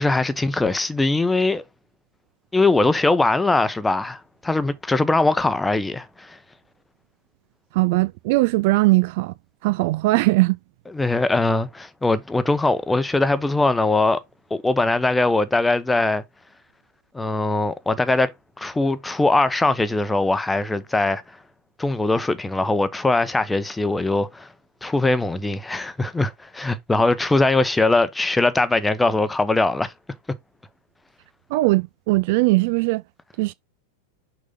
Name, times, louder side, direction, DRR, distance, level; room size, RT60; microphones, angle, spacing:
voice 1, 0.0-1.6 2.5-6.4 10.9-14.2 14.5-16.2 17.1-18.3 18.6-21.4 21.8-24.5 24.8-29.9, left 2 dB, 10° left, 0.9 m, -21 dB
voice 2, 7.7-9.3 9.6-10.6 31.5-33.0 33.4-33.5, right 21 dB, 50° right, 0.3 m, -19 dB
6.5 x 5.1 x 3.8 m
figure-of-eight pair, 90°, 0 cm